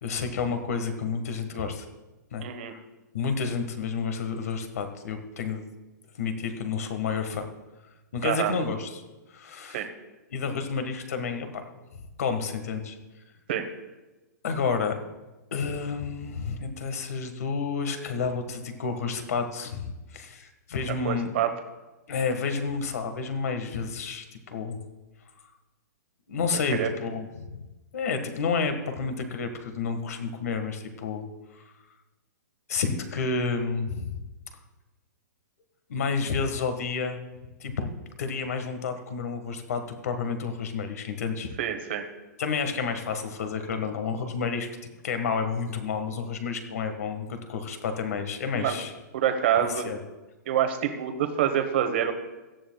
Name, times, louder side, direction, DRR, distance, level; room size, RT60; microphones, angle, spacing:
voice 1, 0.0-1.8 2.3-2.8 3.1-5.6 6.2-7.5 8.1-9.0 9.3-9.8 10.3-11.6 12.2-13.0 14.4-15.0 15.5-21.4 22.1-24.8 26.3-27.6 27.9-31.2 31.5-31.6 32.7-34.1 35.9-37.2 37.6-37.9 38.2-41.5 42.4-44.7 45.0-48.9 49.5-50.0, left 5 dB, 55° left, 7 dB, 1.6 m, -30 dB
voice 2, 2.4-2.7 8.2-8.5 9.7-9.9 13.5-13.6 21.0-21.5 26.8-26.9 41.6-42.0 48.6-48.8 49.1-49.9 50.5-52.1, right 10 dB, 35° right, 6 dB, 1.1 m, -26 dB
17.0 x 13.0 x 2.3 m, 1.1 s
hypercardioid pair, 180°, 10 cm